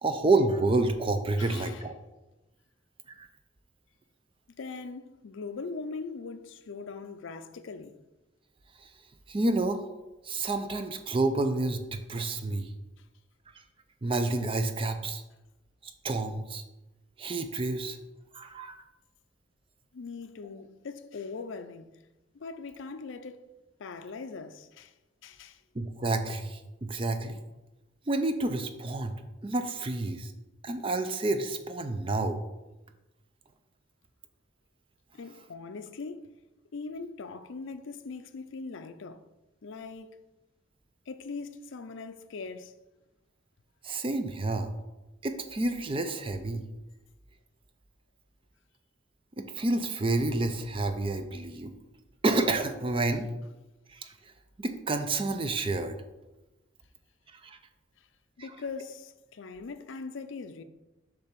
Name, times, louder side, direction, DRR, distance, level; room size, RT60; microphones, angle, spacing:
voice 1, 0.0-1.9 3.2-3.3 8.8-8.9 9.3-9.8 10.2-12.7 14.0-15.2 15.8-16.6 17.2-18.0 18.3-18.8 25.7-27.4 28.1-30.3 30.6-32.4 43.8-44.7 45.2-46.6 49.4-51.7 52.2-53.3 53.9-54.1 54.6-56.0 57.3-57.6, right 2 dB, 25° right, 0.4 m, -29 dB
voice 2, 1.4-1.8 4.6-8.0 19.9-21.9 22.3-23.5 23.8-24.9 25.2-25.6 35.1-36.3 36.7-39.2 39.6-40.2 41.1-42.7 58.4-60.6, left 4 dB, 75° left, 0.5 m, -41 dB
6.8 x 3.4 x 5.7 m
head